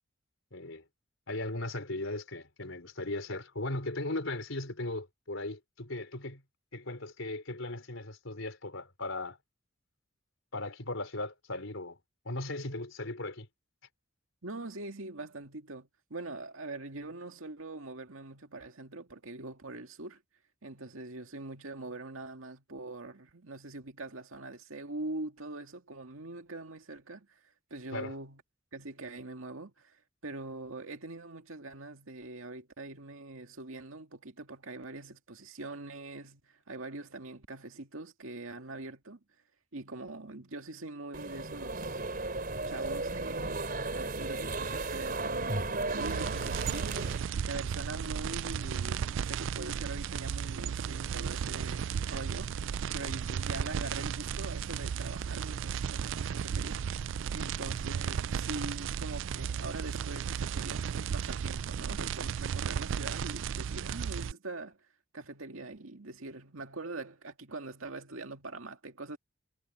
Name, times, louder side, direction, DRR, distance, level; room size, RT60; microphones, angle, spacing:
voice 1, 0.5-0.8 1.3-6.4 6.7-9.4 10.5-12.0 12.2-13.5 27.9-28.2, left 2 dB, 75° left, 4.0 m, -37 dB
voice 2, 14.4-20.2 20.6-27.4 27.7-28.4 28.7-39.2 39.7-42.0 42.7-47.0 47.3-52.6 52.9-64.8 65.1-69.2, right 2 dB, 90° right, 2.1 m, -43 dB
sound 1, 41.1-47.2, right 2 dB, 45° right, 4.0 m, -35 dB
sound 2, 46.0-64.3, right 7 dB, 65° right, 0.3 m, -34 dB
head